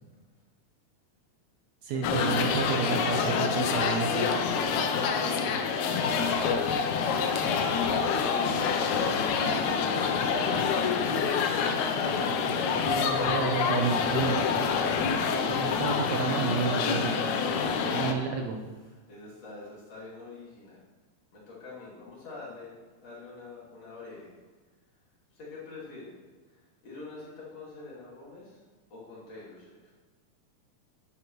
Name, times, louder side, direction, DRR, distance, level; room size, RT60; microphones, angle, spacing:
voice 1, 1.8-4.3 12.8-14.7 15.5-17.2 17.9-18.6, right 5 dB, 70° right, 2 dB, 1.8 m, -31 dB
sound 1, 2.0-18.1, left 5 dB, 75° left, 2.0 m, -27 dB
voice 2, 4.9-7.2 8.1-12.1 17.6-18.1 19.1-20.8 21.3-24.3 25.3-26.1 26.8-28.6 28.9-29.8, left 3 dB, 55° left, -8 dB, 3.6 m, -44 dB
11.5 x 8.0 x 3.1 m, 1.3 s
omnidirectional pair, 3.6 m